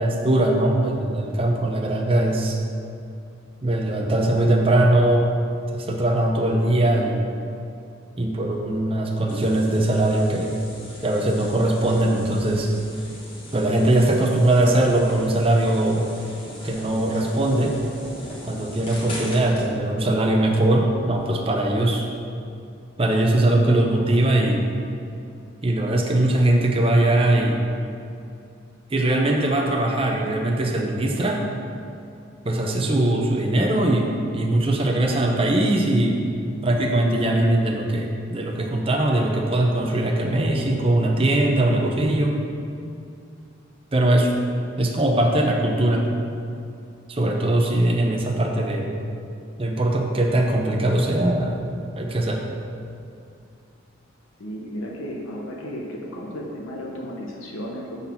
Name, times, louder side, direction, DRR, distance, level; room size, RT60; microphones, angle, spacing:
voice 1, 0.0-2.6 3.6-5.3 5.7-7.2 8.2-10.6 11.0-12.7 13.5-16.1 16.6-17.7 18.4-22.0 23.0-24.7 25.6-27.6 28.9-31.4 32.4-36.1 36.6-42.3 43.9-44.3 44.8-46.1 47.1-48.9 49.6-51.6 51.9-52.4, right 1 dB, 25° right, 1 dB, 0.7 m, -21 dB
sound 1, 9.3-19.7, equal, 25° left, 1.3 m, -40 dB
voice 2, 54.4-58.0, equal, 85° left, -2 dB, 0.9 m, -34 dB
7.1 x 4.1 x 5.7 m, 2.5 s
head